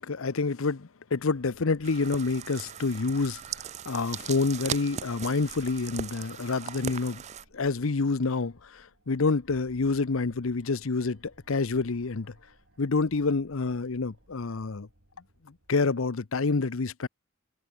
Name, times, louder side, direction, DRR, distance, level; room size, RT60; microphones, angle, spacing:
voice 1, 0.0-3.4 3.9-7.2 7.5-12.3 12.8-14.9 15.7-17.1, left 4 dB, 70° left, 0.8 m, -28 dB
sound 1, 1.2-15.7, right 1 dB, 60° right, 5.8 m, -61 dB
sound 2, 1.8-7.4, right 8 dB, 35° right, 0.4 m, -39 dB
head